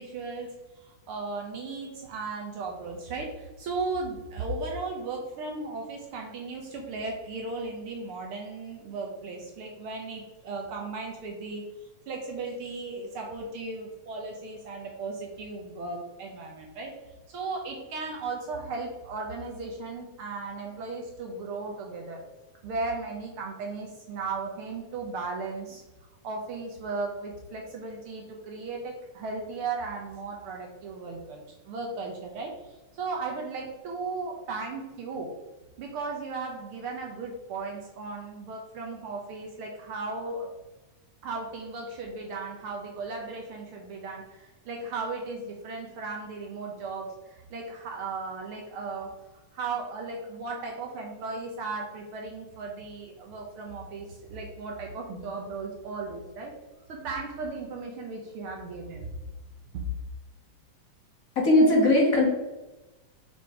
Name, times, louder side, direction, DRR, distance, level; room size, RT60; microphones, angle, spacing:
voice 1, 0.0-11.6 12.1-16.9 17.3-22.2 22.6-25.8 26.2-35.3 35.8-40.5 41.2-49.1 49.5-56.5 56.9-59.1 59.7-59.9, right 3 dB, 75° right, 0 dB, 1.3 m, -36 dB
voice 2, 61.3-62.3, left 1 dB, 45° left, -1 dB, 1.1 m, -19 dB
6.3 x 4.3 x 4.7 m, 1.1 s
omnidirectional pair, 3.5 m